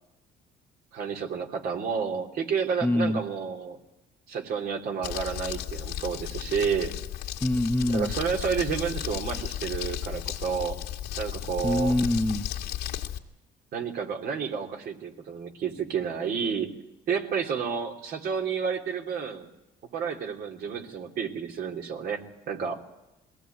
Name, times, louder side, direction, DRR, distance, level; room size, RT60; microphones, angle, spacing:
voice 1, 0.9-3.8 4.3-6.9 7.9-10.8 11.2-12.0 13.7-16.7 17.1-19.5 19.9-22.2 22.5-22.8, right 6 dB, 65° right, 2 dB, 3.0 m, -30 dB
voice 2, 2.8-3.2 7.4-8.1 11.6-12.5, left 1 dB, 10° left, 7 dB, 0.9 m, -25 dB
Crumpling crinkling, 5.0-13.2, left 12 dB, 80° left, 2.0 m, -34 dB
22.0 x 17.0 x 9.2 m, 0.99 s
cardioid pair, 110°, 17 cm